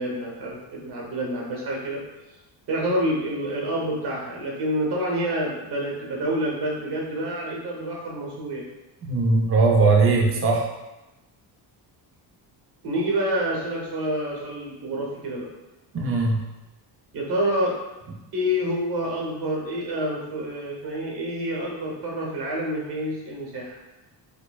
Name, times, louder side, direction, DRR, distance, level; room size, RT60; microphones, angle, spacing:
voice 1, 0.0-2.0 2.7-8.7 12.8-15.5 17.1-17.7 18.3-23.8, equal, 60° right, -2 dB, 1.0 m, -28 dB
voice 2, 9.0-10.7 15.9-16.4, right 3 dB, 35° right, 0 dB, 0.5 m, -19 dB
4.3 x 2.1 x 2.3 m, 1.0 s
cardioid pair, 125°, 43 cm